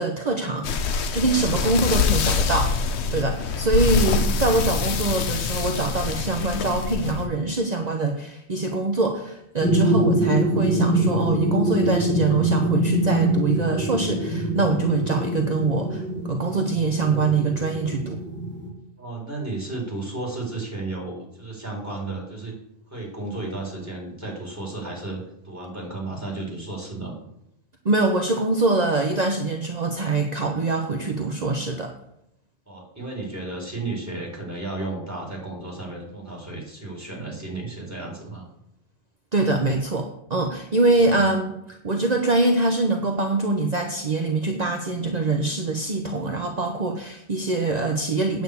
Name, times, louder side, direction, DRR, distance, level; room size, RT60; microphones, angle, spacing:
voice 1, 0.0-2.7 3.1-18.2 27.8-31.9 39.3-48.4, right 3 dB, 40° right, 3 dB, 1.0 m, -24 dB
sound 1, 0.6-7.3, left 5 dB, 80° left, 1.1 m, -24 dB
sound 2, 9.6-18.7, right 1 dB, 10° left, 2.7 m, -24 dB
voice 2, 19.0-22.6 22.9-27.2 32.7-38.5 41.1-41.2, right 2 dB, 15° right, -3 dB, 4.0 m, -33 dB
9.1 x 6.3 x 8.3 m, 0.81 s
omnidirectional pair, 1.1 m